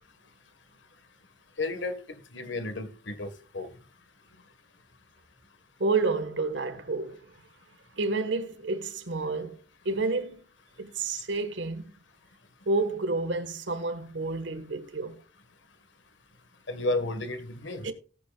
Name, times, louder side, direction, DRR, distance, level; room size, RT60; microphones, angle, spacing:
voice 1, 1.6-1.9 2.3-3.3 3.5-3.7 16.7-17.8, left 2 dB, 70° left, 1.6 m, -32 dB
voice 2, 5.8-7.3 8.0-9.6 9.8-10.5 10.8-11.9 12.6-15.2 17.8-17.9, right 3 dB, 75° right, 1.6 m, -29 dB
18.0 x 8.7 x 2.4 m
head